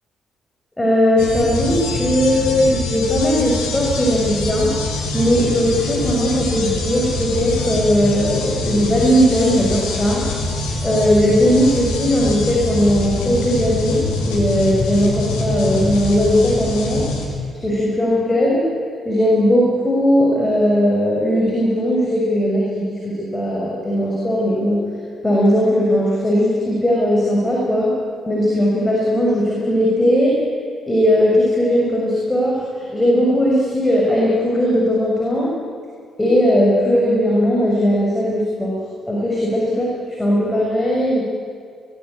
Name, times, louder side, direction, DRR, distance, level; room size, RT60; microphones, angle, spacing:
voice 1, 0.8-4.7 5.1-10.3 10.8-17.0 17.6-18.7 19.0-24.8 25.2-27.9 28.3-30.4 30.9-35.5 36.2-38.8 39.1-41.2, equal, 15° left, -4 dB, 6.7 m, -18 dB
sound 1, 1.2-17.3, left 2 dB, 70° left, 3.7 m, -24 dB
21.5 x 19.5 x 8.9 m, 2.2 s
figure-of-eight pair, 40°, 0 cm